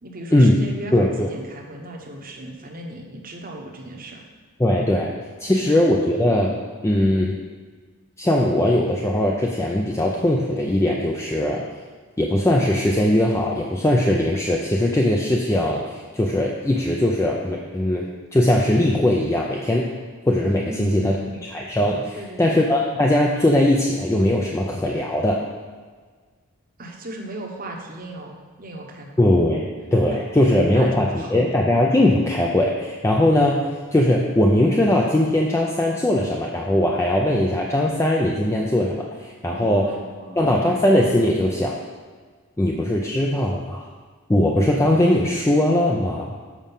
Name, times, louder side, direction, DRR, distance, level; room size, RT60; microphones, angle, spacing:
voice 1, 0.0-4.3 5.5-5.6 6.1-6.2 20.7-21.4 22.2-22.5 26.8-29.1 30.4-31.4 39.5-40.8, right 1 dB, 40° right, 2 dB, 1.0 m, -37 dB
voice 2, 0.9-1.3 4.6-5.1 5.4-6.5 6.8-7.3 8.2-11.6 12.2-19.9 20.3-21.1 21.5-25.4 29.2-29.7 29.9-39.9 40.4-41.8 42.6-43.8 44.3-46.4, left 1 dB, 15° left, -1 dB, 0.4 m, -20 dB
7.4 x 5.0 x 5.5 m, 1.5 s
head